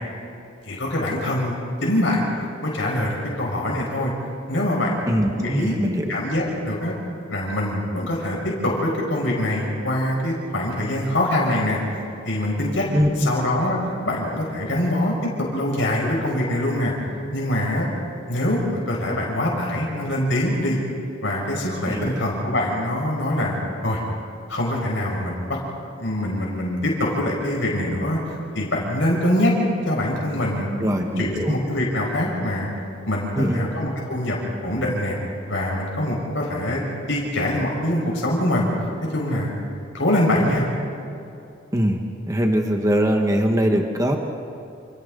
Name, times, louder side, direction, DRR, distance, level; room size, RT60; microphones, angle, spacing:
voice 1, 0.6-2.2 2.6-4.1 4.5-5.0 5.4-5.7 6.1-6.9 7.3-11.8 12.2-12.9 13.2-16.9 17.3-17.9 18.3-20.8 21.2-24.0 24.5-25.6 26.0-28.2 28.5-29.5 29.8-30.7 31.2-32.7 33.0-34.4 34.6-35.2 35.5-36.8 37.1-38.7 39.1-39.5 39.9-40.6, left 1 dB, 70° left, -3 dB, 5.1 m, -24 dB
voice 2, 5.1-6.1 12.9-13.3 21.9-22.1 30.8-31.5 33.3-33.6 41.7-44.2, equal, 15° right, 3 dB, 1.3 m, -22 dB
28.5 x 28.5 x 3.9 m, 2.7 s
head